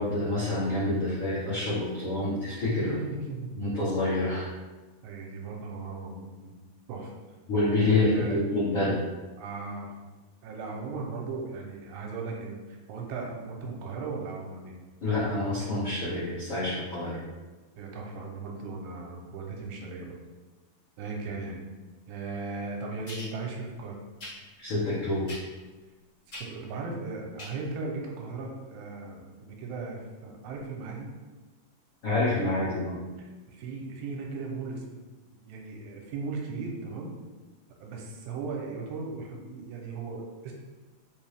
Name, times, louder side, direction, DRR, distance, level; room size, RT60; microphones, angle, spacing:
voice 1, 0.0-2.9 3.5-4.5 7.5-9.0 15.0-17.2 24.6-25.3 32.0-33.0, left 2 dB, 75° left, -11 dB, 1.1 m, -27 dB
voice 2, 2.8-3.5 5.0-6.5 6.9-7.1 7.8-8.4 9.4-9.9 10.4-14.8 17.8-20.2 21.0-21.6 22.1-24.0 26.4-31.1 33.2-35.0 35.5-37.1 37.8-40.5, right 3 dB, 85° right, 0 dB, 2.3 m, -37 dB
sound 1, 23.1-23.3 24.2-24.3 25.2-25.6 26.3-26.4 27.4-27.5 27.8-27.9, left 1 dB, 45° left, 0.9 m, -40 dB
5.2 x 2.7 x 3.3 m, 1.2 s
omnidirectional pair, 4.0 m